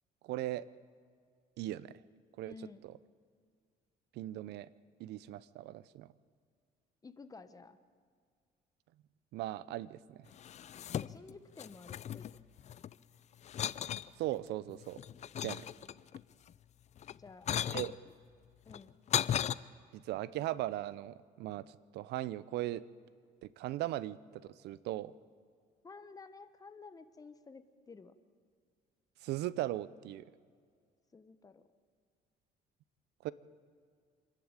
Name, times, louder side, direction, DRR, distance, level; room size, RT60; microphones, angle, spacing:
voice 1, 0.2-0.6 1.6-1.9 2.4-2.5 2.8-2.9 4.1-4.7 5.0-6.1 9.3-10.3 14.2-15.0 15.4-15.6 17.7-17.9 19.9-21.7 21.9-22.8 23.4-25.1 29.2-30.2 33.2-33.3, right 15 dB, 80° right, 19 dB, 0.7 m, -38 dB
voice 2, 2.4-2.8 7.0-7.8 10.9-12.4 17.1-17.5 18.0-18.1 18.6-18.9 25.8-28.1 31.1-31.6, left 4 dB, 20° left, 11 dB, 1.2 m, -53 dB
sound 1, 10.3-11.3 11.6-12.9 13.4-14.1 14.7-16.2 17.0-17.9 18.7-19.5, left 10 dB, 45° left, 0.5 m, -36 dB
26.5 x 11.0 x 9.0 m, 2.1 s
cardioid pair, 110°, 17 cm